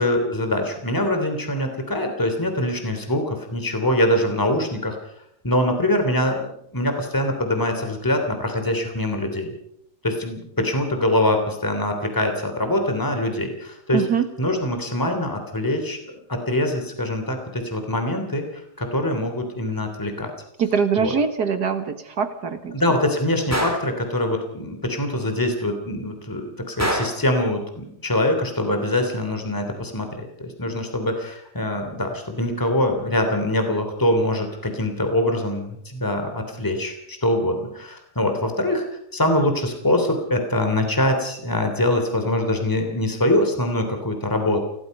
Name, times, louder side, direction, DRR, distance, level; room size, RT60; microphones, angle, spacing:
voice 1, 0.0-5.0 5.4-6.4 6.7-9.5 10.0-14.0 14.4-16.0 16.3-20.3 21.0-21.1 22.7-38.8 39.1-44.6, left 1 dB, 10° left, 5 dB, 3.2 m, -23 dB
voice 2, 13.9-14.3 20.6-22.7, right 6 dB, 70° right, 8 dB, 2.2 m, -23 dB
Gunshot gunfire, 23.5-23.9 26.8-27.3, equal, 10° right, 3.0 m, -25 dB
28.0 x 17.5 x 5.5 m, 0.75 s
omnidirectional pair, 1.8 m